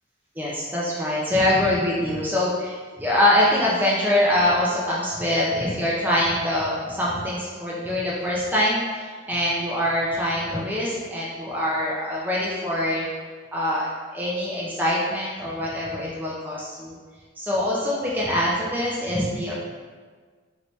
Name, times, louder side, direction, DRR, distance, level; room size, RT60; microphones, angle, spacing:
voice 1, 0.4-13.0 13.5-13.9 14.1-17.0 17.4-19.5, left 1 dB, 10° right, -6 dB, 0.4 m, -24 dB
3.2 x 2.7 x 3.0 m, 1.5 s
head